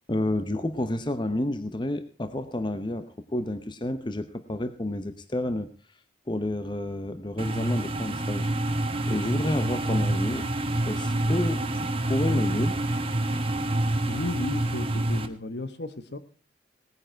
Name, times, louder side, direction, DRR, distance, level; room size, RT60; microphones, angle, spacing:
voice 1, 0.1-5.7 6.3-8.5 9.1-10.5 10.9-12.8, left 1 dB, 25° left, 10 dB, 0.8 m, -30 dB
sound 1, 7.4-15.3, right 1 dB, 30° right, 1.3 m, -27 dB
voice 2, 14.1-16.2, left 2 dB, 65° left, 11 dB, 1.3 m, -34 dB
18.5 x 9.7 x 4.5 m, 0.36 s
head